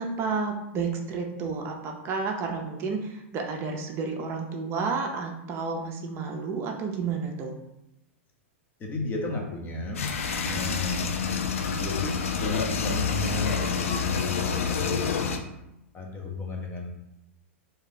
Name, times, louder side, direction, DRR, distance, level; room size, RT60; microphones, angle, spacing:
voice 1, 0.0-7.6, right 4 dB, 35° right, 2 dB, 0.5 m, -31 dB
voice 2, 8.8-10.1 10.4-11.2 11.7-15.2 15.9-16.9, left 3 dB, 25° left, 1 dB, 0.7 m, -34 dB
sound 1, 9.9-15.4, left 5 dB, 85° left, 0.4 m, -28 dB
2.7 x 2.3 x 3.7 m, 0.86 s
hypercardioid pair, 120°, 7 cm